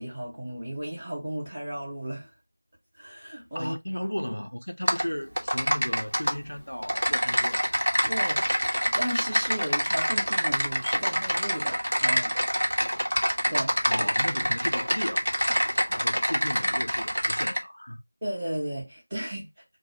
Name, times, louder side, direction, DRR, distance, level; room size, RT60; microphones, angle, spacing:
voice 1, 0.0-2.3 3.0-3.7 8.0-8.4 8.8-12.3 13.1-14.1 18.2-19.5, right 1 dB, 10° right, 0.9 m, -34 dB
voice 2, 3.5-7.7 13.8-18.0, equal, 70° left, 0.4 m, -35 dB
Typing, 4.9-5.0 5.4-6.3 6.8-17.6, equal, 85° right, 1.0 m, -26 dB
2.8 x 2.1 x 4.1 m
figure-of-eight pair, 175°, 0 cm